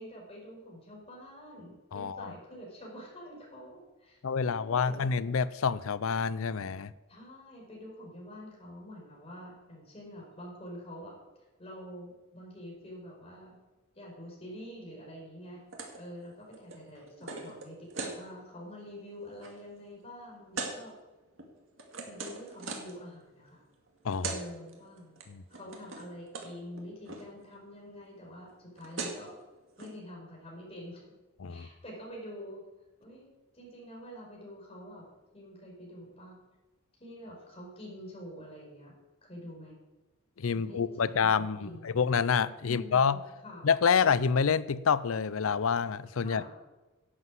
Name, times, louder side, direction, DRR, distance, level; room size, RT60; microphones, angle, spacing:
voice 1, 0.0-5.0 7.1-11.1 11.6-13.6 13.9-15.6 16.0-21.0 22.0-23.6 24.2-25.2 25.5-29.3 29.8-31.0 31.5-32.6 33.0-35.0 35.3-36.4 37.0-38.9 39.2-39.8 40.5-42.0 42.6-43.6 46.2-46.5, equal, 30° left, -2 dB, 4.9 m, -46 dB
voice 2, 1.9-2.3 4.2-6.9 24.0-24.3 25.3-25.4 31.4-31.7 40.4-43.2 43.6-46.5, left 6 dB, 75° left, 17 dB, 0.5 m, -28 dB
sound 1, 15.7-16.0 16.3-18.2 18.7-18.9 19.2-19.5 20.5-20.8 21.4-23.0 23.9-24.0 24.1-24.4 24.7-25.2 25.5-26.1 26.3-26.5 26.8-27.2 28.5-28.6 28.8-29.3 29.8-29.9, right 4 dB, 65° right, 2.2 m, -39 dB
11.0 x 8.0 x 7.6 m, 1.1 s
head